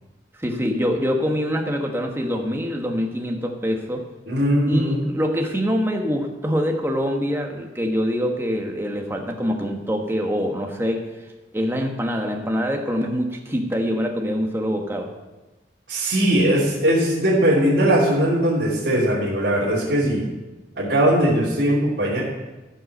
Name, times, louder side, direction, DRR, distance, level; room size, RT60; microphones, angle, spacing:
voice 1, 0.4-4.1 4.7-11.1 11.5-15.1, equal, 15° right, 2 dB, 1.2 m, -24 dB
voice 2, 4.3-5.0 15.9-20.2 20.8-22.2, right 1 dB, 65° right, -11 dB, 3.1 m, -20 dB
14.0 x 5.5 x 6.7 m, 1.1 s
head